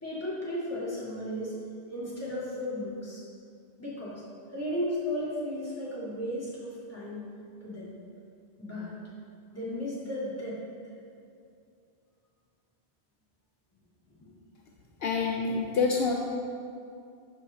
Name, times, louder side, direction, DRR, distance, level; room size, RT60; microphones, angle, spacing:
voice 1, 0.0-1.5 1.9-3.2 3.8-4.2 4.5-7.3 7.6-7.9 8.6-8.9 9.5-10.6 14.2-14.3, left 1 dB, 15° left, -9 dB, 2.2 m, -34 dB
voice 2, 15.0-16.1, left 4 dB, 70° left, 0 dB, 0.9 m, -27 dB
12.0 x 4.8 x 3.9 m, 2.4 s
omnidirectional pair, 1.0 m